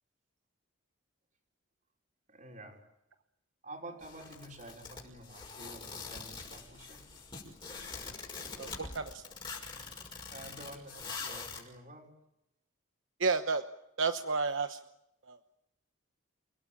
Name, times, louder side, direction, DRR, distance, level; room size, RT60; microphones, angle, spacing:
voice 1, 2.3-2.8 3.6-7.0 9.9-10.0 10.3-12.1, right 1 dB, 35° right, 2 dB, 5.2 m, -49 dB
sound 1, 4.0-11.6, left 4 dB, 25° left, 5.9 m, -44 dB
voice 2, 8.6-9.2 13.2-13.6 14.0-14.8 15.3-15.6, right 4 dB, 75° right, 9 dB, 1.0 m, -31 dB
29.0 x 17.5 x 8.8 m, 0.84 s
head